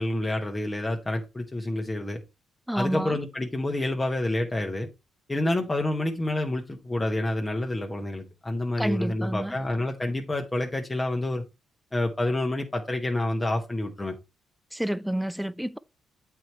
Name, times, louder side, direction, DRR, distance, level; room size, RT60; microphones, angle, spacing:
voice 1, 0.0-2.2 2.7-4.9 5.3-11.4 11.9-14.2, left 1 dB, 15° left, 1.0 m, -28 dB
voice 2, 2.7-3.2 8.8-9.6 14.7-15.8, right 1 dB, ahead, 0.4 m, -29 dB
7.7 x 4.6 x 4.2 m
cardioid pair, 90°, 0 cm